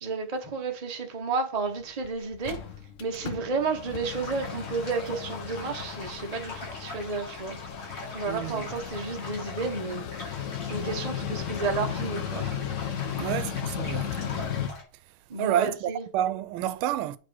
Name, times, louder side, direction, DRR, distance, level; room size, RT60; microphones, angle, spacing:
voice 1, 0.0-2.6 3.0-7.6 8.1-10.1 10.7-12.6 13.2-13.3 15.3-16.1, right 4 dB, 40° right, 0.5 m, -31 dB
Mechanical fan, 1.7-1.8 2.0-2.1 2.3-14.7, left 8 dB, 85° left, 0.6 m, -35 dB
sound 1, 4.0-14.8, left 2 dB, 60° left, 4.1 m, -42 dB
voice 2, 8.3-8.6 13.2-14.1 15.4-17.2, right 11 dB, 80° right, 1.4 m, -29 dB
8.6 x 4.2 x 4.7 m
omnidirectional pair, 2.3 m